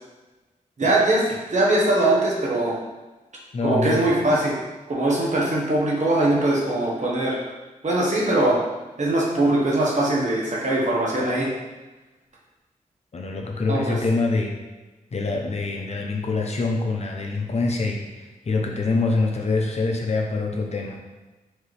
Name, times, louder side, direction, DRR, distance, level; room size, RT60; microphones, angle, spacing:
voice 1, 0.8-1.2 1.5-2.8 3.6-4.5 4.9-7.5 7.8-8.6 9.0-11.5 13.7-14.0, right 1 dB, 55° right, -4 dB, 1.2 m, -21 dB
voice 2, 3.5-4.1 13.1-14.6 15.1-21.0, left 3 dB, 50° left, 1 dB, 0.7 m, -25 dB
4.5 x 2.8 x 3.3 m, 1.1 s
cardioid pair, 60°, 14 cm